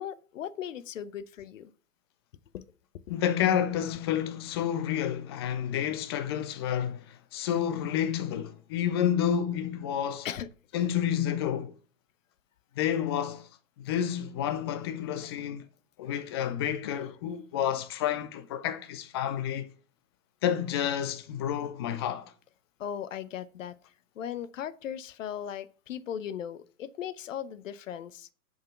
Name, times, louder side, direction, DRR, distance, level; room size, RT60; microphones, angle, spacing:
voice 1, 0.0-1.7 2.5-2.6 10.2-10.5 16.8-17.0 22.8-23.8 24.2-28.3, left 9 dB, 55° left, 0.8 m, -38 dB
voice 2, 3.1-10.3 10.7-11.7 12.8-13.5 13.8-15.6 16.0-19.7 20.4-22.3, left 9 dB, 20° left, 0.4 m, -30 dB
7.2 x 4.7 x 5.8 m
figure-of-eight pair, 110°, 45 cm